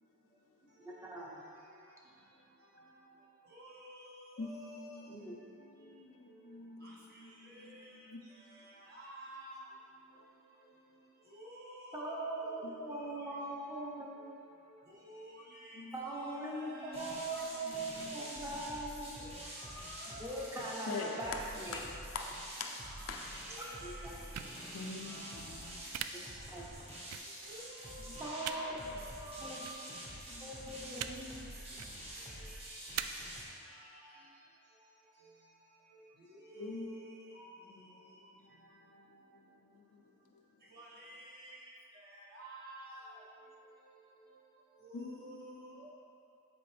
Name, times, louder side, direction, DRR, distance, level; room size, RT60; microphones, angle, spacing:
voice 1, 0.8-1.4 5.1-5.4 11.9-14.2 15.9-19.3 20.2-21.8 23.8-24.2 26.1-26.7 28.2-28.8 29.4-29.6 30.4-31.3 31.7-31.9, right 2 dB, 10° right, -3 dB, 0.9 m, -41 dB
voice 2, 3.5-5.0 6.8-7.2 7.5-8.0 8.9-9.6 11.3-13.2 15.0-17.6 19.2-20.7 22.8-24.5 25.0-25.5 27.5-29.8 32.3-32.8 33.7-34.0 36.4-37.5 40.7-41.7 42.0-43.2 44.8-45.9, right 1 dB, 45° right, -5 dB, 1.4 m, -51 dB
voice 3, 4.4-8.2 12.6-12.7 15.7-16.0 16.8-18.8 20.9-21.4 21.7-22.8 23.1-23.3 24.7-26.1 28.1-28.2 29.6-29.7 30.3-31.4 36.6-37.1 37.7-40.0 40.3-40.4 44.9-45.8, left 4 dB, 65° left, 2 dB, 0.6 m, -47 dB
sound 1, 16.9-33.4, right 1 dB, 25° right, 1.2 m, -47 dB
sound 2, 24.3-24.5 25.9-26.1 27.1-27.2 28.4-28.6 29.6-29.8 30.9-31.1 31.7-31.9 32.9-33.0, right 12 dB, 85° right, 0.3 m, -39 dB
9.0 x 4.4 x 3.4 m, 2.7 s
head